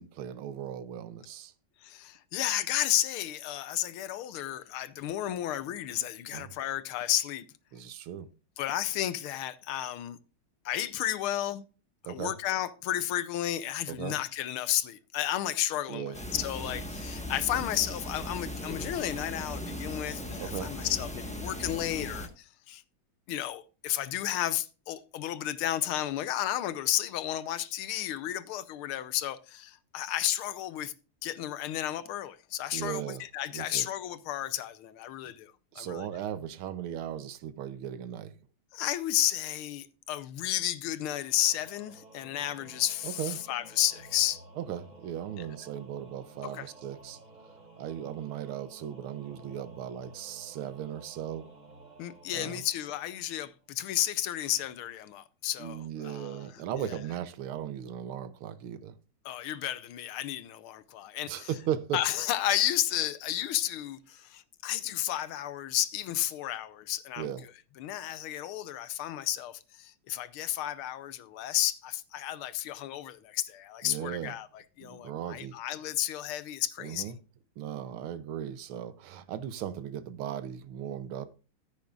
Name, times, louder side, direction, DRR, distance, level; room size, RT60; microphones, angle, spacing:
voice 1, 0.0-1.5 6.3-6.5 7.7-8.3 12.0-12.3 13.9-14.2 15.9-16.2 20.4-20.7 32.7-33.2 33.5-33.9 35.7-38.4 43.0-43.4 44.6-47.2 47.8-51.5 52.3-52.6 55.6-59.0 61.3-62.0 67.2-67.4 73.8-74.3 74.8-75.6 76.8-77.2 77.6-81.3, right 10 dB, 80° right, 1.7 m, -37 dB
voice 2, 1.8-7.5 8.6-10.2 10.6-11.6 12.0-22.8 23.3-30.9 31.2-36.1 38.7-44.4 45.4-45.5 46.4-46.7 52.0-57.0 59.2-61.5 61.9-67.3 67.8-77.1, left 12 dB, 85° left, 1.6 m, -32 dB
sound 1, 16.1-22.3, equal, 5° left, 0.9 m, -38 dB
Singing / Musical instrument, 41.2-53.7, right 2 dB, 35° right, 3.7 m, -53 dB
14.0 x 8.4 x 2.4 m
omnidirectional pair, 2.3 m